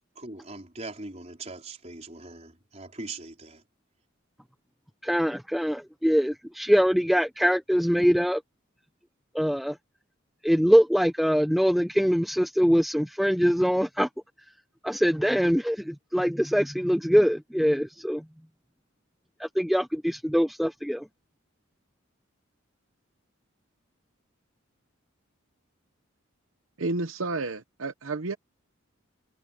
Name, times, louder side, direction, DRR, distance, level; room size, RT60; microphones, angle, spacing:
voice 1, 0.2-3.6, right 3 dB, 30° right, 4.5 m, -41 dB
voice 2, 5.0-8.4 9.3-9.8 10.4-14.1 14.8-18.2 19.4-21.1, equal, ahead, 0.6 m, -23 dB
voice 3, 26.8-28.4, right 3 dB, 70° right, 0.9 m, -31 dB
head